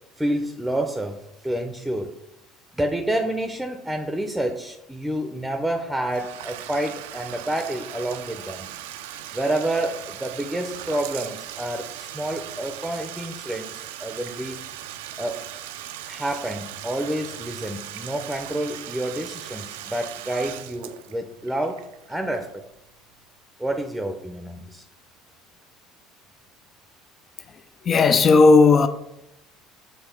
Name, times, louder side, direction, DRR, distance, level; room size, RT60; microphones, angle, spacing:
voice 1, 0.2-2.1 2.7-8.7 9.3-14.6 15.2-15.4 16.0-22.6 23.6-24.8, right 1 dB, 5° right, 0.6 m, -29 dB
Bathtub (filling or washing), 6.0-22.8, right 12 dB, 80° right, 0.4 m, -39 dB
voice 2, 27.8-28.9, left 4 dB, 40° left, 0.4 m, -14 dB
6.9 x 3.2 x 4.4 m
hypercardioid pair, 70°, 0 cm